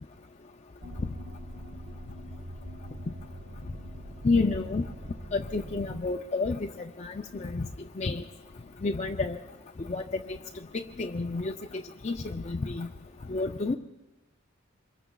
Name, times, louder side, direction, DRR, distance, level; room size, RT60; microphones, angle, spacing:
sound 1, 0.8-6.0, equal, 40° right, 1.1 m, -43 dB
voice 1, 4.2-4.8 5.3-6.6 7.0-7.7 8.0-8.2 8.8-9.4 9.9-10.4 10.7-11.5 12.0-12.9 13.3-13.8, left 3 dB, 30° left, 4 dB, 0.4 m, -29 dB
26.0 x 22.5 x 2.3 m, 1.1 s
head